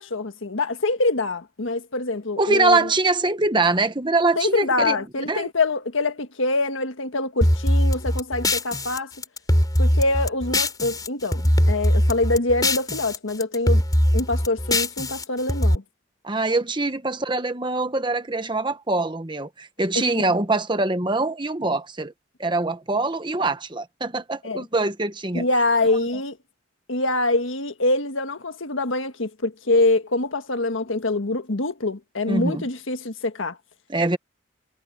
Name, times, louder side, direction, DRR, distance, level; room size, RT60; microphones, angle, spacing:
voice 1, 0.0-2.9 4.4-9.1 9.8-13.8 14.1-15.8 19.9-20.2 24.4-24.6 25.3-26.4 26.9-33.6, left 2 dB, 85° left, 1.6 m, -25 dB
voice 2, 2.4-5.0 5.3-5.5 16.2-22.1 22.4-25.4 32.3-32.6 33.9-34.2, right 2 dB, 25° right, 1.2 m, -23 dB
sound 1, 7.4-11.1 11.3-13.2 13.4-15.7, left 1 dB, 20° left, 4.4 m, -21 dB
head